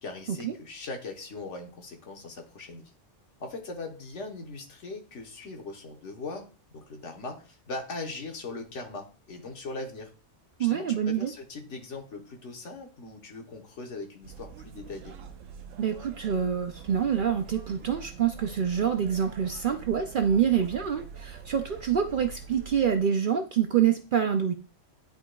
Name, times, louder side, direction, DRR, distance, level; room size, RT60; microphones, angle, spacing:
voice 1, 0.0-2.9 3.4-10.1 10.6-15.1, left 3 dB, 70° left, 2 dB, 1.5 m, -40 dB
voice 2, 10.6-11.3 15.8-24.5, right 8 dB, 60° right, 6 dB, 0.6 m, -26 dB
sound 1, 14.2-23.0, right 7 dB, 90° right, 1.0 m, -45 dB
10.5 x 4.1 x 2.3 m, 0.36 s
omnidirectional pair, 1.3 m